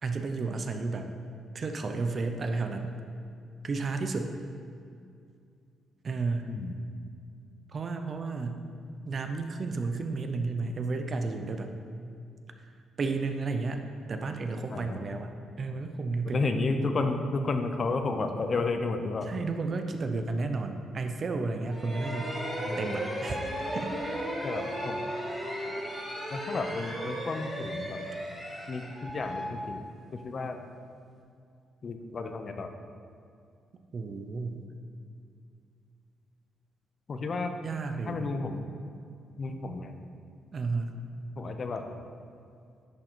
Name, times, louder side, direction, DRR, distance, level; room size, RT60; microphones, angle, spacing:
voice 1, 0.0-1.1 1.5-2.9 3.6-4.3 6.0-6.5 7.7-8.6 9.1-11.7 13.0-13.8 14.1-15.3 15.6-16.5 19.3-22.4 22.8-23.9 33.9-34.6 37.6-38.3 40.5-40.9, right 3 dB, 45° right, 6 dB, 0.6 m, -32 dB
voice 2, 14.7-15.0 16.2-19.3 22.6-23.0 24.4-25.0 26.3-28.0 28.7-29.8 30.1-30.6 31.8-32.7 37.1-37.5 38.1-38.7 39.4-40.0 41.4-41.8, left 3 dB, 45° left, 6 dB, 0.6 m, -32 dB
sound 1, 21.7-30.4, equal, ahead, 1.5 m, -36 dB
10.5 x 3.8 x 4.5 m, 2.4 s
cardioid pair, 90°, 0 cm